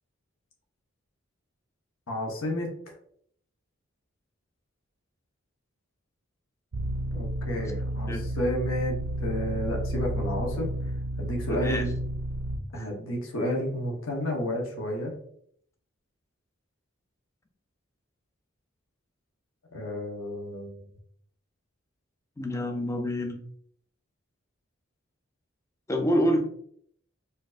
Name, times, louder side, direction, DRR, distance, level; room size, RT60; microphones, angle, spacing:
voice 1, 2.1-2.8 7.1-10.8 11.2-11.9 12.7-15.2 19.7-20.8, left 1 dB, 80° left, 0 dB, 0.9 m, -31 dB
sound 1, 6.7-12.6, right 1 dB, 75° right, 0.5 m, -31 dB
voice 2, 22.4-23.4 25.9-26.4, equal, 15° left, 4 dB, 0.5 m, -27 dB
4.4 x 2.7 x 2.4 m, 0.64 s
head